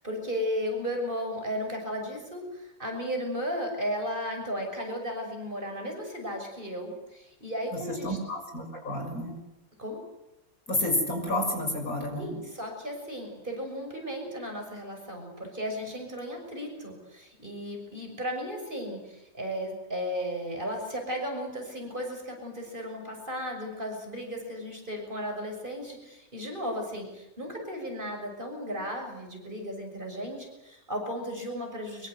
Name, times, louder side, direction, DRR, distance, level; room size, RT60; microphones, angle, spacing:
voice 1, 0.0-8.2 9.8-10.0 12.1-32.1, equal, 35° right, 2 dB, 6.7 m, -35 dB
voice 2, 7.7-9.4 10.7-12.3, left 1 dB, 70° left, 3 dB, 6.9 m, -30 dB
24.5 x 23.0 x 8.1 m, 0.91 s
omnidirectional pair, 1.6 m